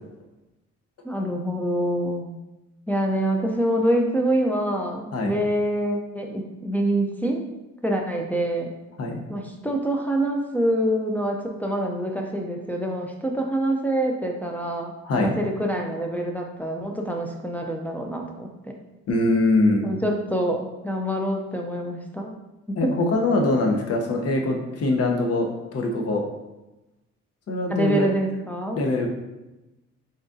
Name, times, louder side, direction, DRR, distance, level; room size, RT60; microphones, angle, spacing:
voice 1, 1.0-2.4 2.9-7.4 7.8-8.7 9.3-18.8 19.8-22.3 22.7-22.9 27.7-28.8, right 1 dB, 5° left, 0 dB, 0.4 m, -26 dB
voice 2, 15.0-15.4 19.1-19.8 22.8-26.2 27.5-28.1 28.8-29.1, left 2 dB, 55° left, 1 dB, 0.8 m, -23 dB
3.9 x 3.6 x 2.6 m, 1.0 s
cardioid pair, 90°, 30 cm